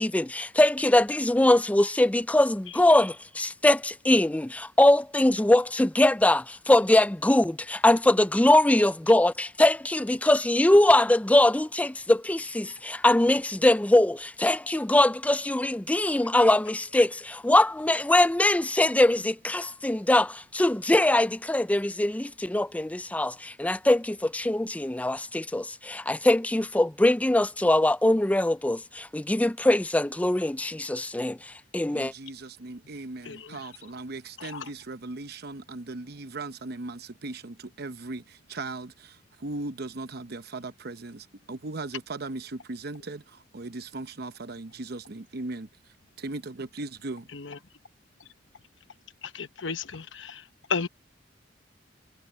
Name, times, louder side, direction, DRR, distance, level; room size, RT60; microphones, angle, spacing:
voice 1, 0.0-31.4 31.7-32.1, left 1 dB, 10° left, 0.4 m, -22 dB
voice 2, 31.9-45.7 46.2-47.3, right 2 dB, 60° right, 0.9 m, -38 dB
voice 3, 33.2-33.7 34.4-34.7 47.3-47.6 48.2-48.3 49.2-50.9, left 5 dB, 85° left, 1.0 m, -34 dB
head